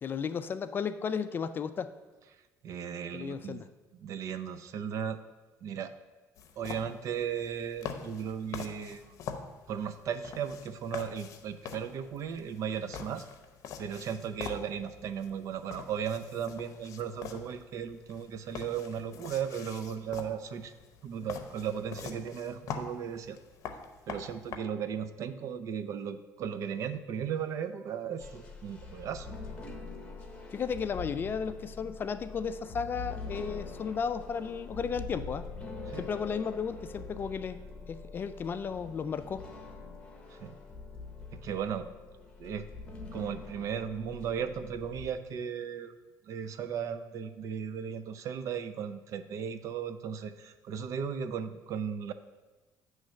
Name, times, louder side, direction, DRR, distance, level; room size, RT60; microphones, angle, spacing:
voice 1, 0.0-1.9 3.1-3.7 30.5-35.5 36.0-37.6 37.9-39.4, left 6 dB, 30° left, 11 dB, 0.3 m, -34 dB
voice 2, 2.6-3.6 3.9-5.2 5.6-5.9 6.6-9.2 9.7-13.2 13.8-20.7 21.0-23.4 24.1-29.3 35.9-36.1 40.4-40.6 41.3-41.9 42.4-42.7 43.1-45.9 46.3-52.1, right 7 dB, 55° right, 11 dB, 0.5 m, -36 dB
sound 1, 6.4-24.6, left 6 dB, 55° left, 0.7 m, -45 dB
sound 2, 28.2-45.1, left 4 dB, 15° left, 1.0 m, -44 dB
9.1 x 3.2 x 6.3 m, 1.2 s
cardioid pair, 125°, 7 cm